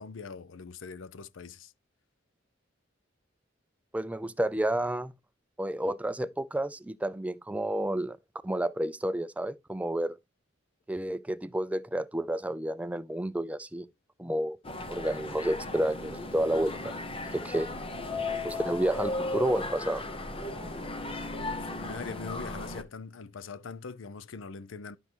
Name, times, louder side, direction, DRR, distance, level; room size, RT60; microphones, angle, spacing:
voice 1, 0.0-1.7 21.6-25.0, left 5 dB, 85° left, 0.6 m, -42 dB
voice 2, 3.9-5.1 5.6-8.2 8.4-10.2 10.9-13.9 14.2-14.6 14.9-16.9 17.3-17.7 18.4-20.0, right 1 dB, 5° right, 0.4 m, -30 dB
sound 1, 14.6-22.8, left 2 dB, 30° left, 0.9 m, -36 dB
12.0 x 5.4 x 3.0 m
head